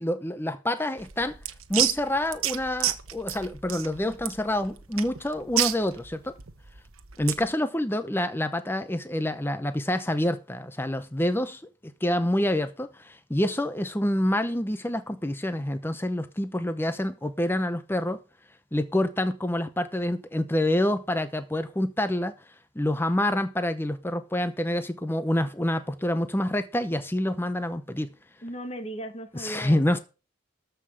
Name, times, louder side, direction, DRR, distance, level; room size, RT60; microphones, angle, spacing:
voice 1, 0.0-1.4 1.7-6.4 7.2-18.2 18.7-28.1 29.3-30.0, left 1 dB, 10° left, 0.7 m, -27 dB
sound 1, 1.0-7.5, right 12 dB, 80° right, 1.2 m, -30 dB
voice 2, 28.4-30.0, right 1 dB, 30° left, 1.4 m, -37 dB
13.5 x 5.6 x 6.4 m
head